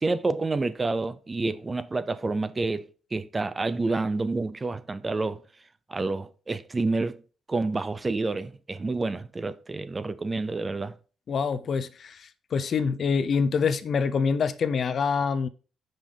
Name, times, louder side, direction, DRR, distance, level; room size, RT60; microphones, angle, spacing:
voice 1, 0.0-5.4 5.9-7.2 7.5-11.0, right 3 dB, 25° right, 0.5 m, -28 dB
voice 2, 11.3-15.5, left 5 dB, 55° left, 0.5 m, -26 dB
5.4 x 5.2 x 3.8 m
cardioid pair, 90°, 0 cm